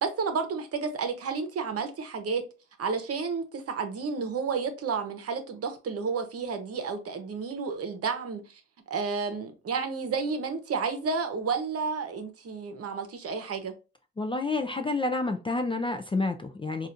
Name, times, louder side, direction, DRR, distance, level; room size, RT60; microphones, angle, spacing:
voice 1, 0.0-2.4 2.8-8.6 8.9-13.7, right 5 dB, 50° right, 0.9 m, -31 dB
voice 2, 14.2-16.9, left 3 dB, 20° left, 0.4 m, -29 dB
4.1 x 2.5 x 2.5 m
cardioid pair, 90°, 30 cm